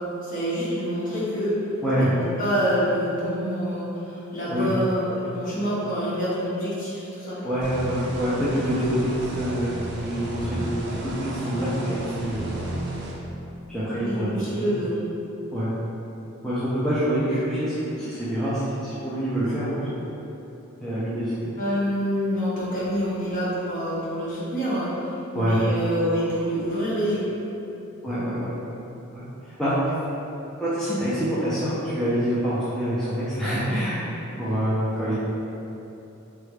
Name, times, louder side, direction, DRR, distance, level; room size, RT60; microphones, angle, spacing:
voice 1, 0.2-1.5 2.0-7.6 14.0-15.0 21.6-27.3, equal, 40° left, -9 dB, 0.9 m, -27 dB
voice 2, 7.4-12.5 13.7-14.7 15.5-15.7 16.4-20.0 20.8-21.5 25.3-25.6 28.0-28.5 29.1-29.2 29.6-29.7 30.6-34.1 34.4-35.1, equal, ahead, -12 dB, 0.4 m, -26 dB
sound 1, 7.6-13.1, right 1 dB, 55° right, 0.4 m, -33 dB
3.2 x 2.3 x 3.2 m, 3.0 s
head